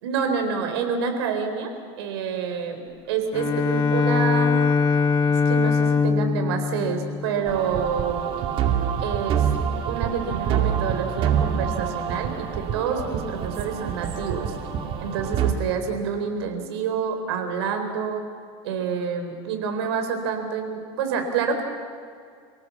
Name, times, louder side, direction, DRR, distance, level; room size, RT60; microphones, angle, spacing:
voice 1, 0.0-1.7 2.0-4.6 5.3-8.2 9.0-9.5 9.9-14.5 15.0-18.2 18.6-21.6, right 6 dB, 85° right, 5 dB, 4.3 m, -28 dB
Bowed string instrument, 3.3-8.0, left 5 dB, 35° left, 1.3 m, -22 dB
sound 1, 7.5-15.5, right 8 dB, 45° right, 2.3 m, -26 dB
29.0 x 18.0 x 7.3 m, 2.2 s
supercardioid pair, 140°, 13 cm